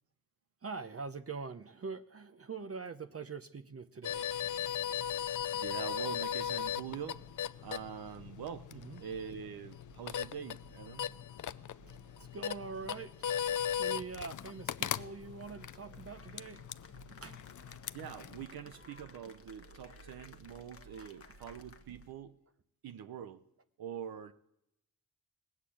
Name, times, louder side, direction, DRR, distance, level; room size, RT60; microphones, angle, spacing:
voice 1, 0.6-4.4 8.7-9.0 12.3-16.6 17.1-17.9 21.0-21.1, right 4 dB, 40° right, 9 dB, 0.8 m, -44 dB
sound 1, 4.0-18.5, left 9 dB, 60° left, 0.6 m, -38 dB
sound 2, 4.0-22.1, right 4 dB, 65° right, 5.4 m, -60 dB
voice 2, 5.5-7.2 7.6-8.7 9.0-11.1 17.9-22.4 22.8-23.4 23.8-24.3, right 8 dB, 85° right, 9 dB, 0.7 m, -44 dB
Cheering / Applause, 15.4-22.1, left 5 dB, 40° left, 1.1 m, -58 dB
19.0 x 8.2 x 8.4 m, 0.82 s
cardioid pair, 60°, 36 cm